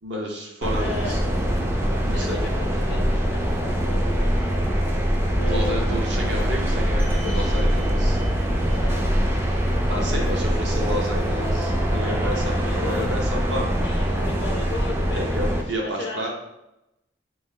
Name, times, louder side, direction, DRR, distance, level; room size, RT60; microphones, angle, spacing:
voice 1, 0.0-1.2 2.0-2.4 5.5-8.2 9.9-13.7 15.2-16.3, equal, 65° right, 0 dB, 0.8 m, -31 dB
sound 1, 0.6-15.6, equal, 10° right, 0.3 m, -23 dB
voice 2, 0.8-1.2 1.9-4.5 5.3-6.0 7.2-7.7 8.5-10.1 12.0-13.2 13.8-15.6 15.8-16.3, left 2 dB, 80° left, -1 dB, 0.6 m, -36 dB
3.4 x 3.1 x 3.6 m, 0.90 s
head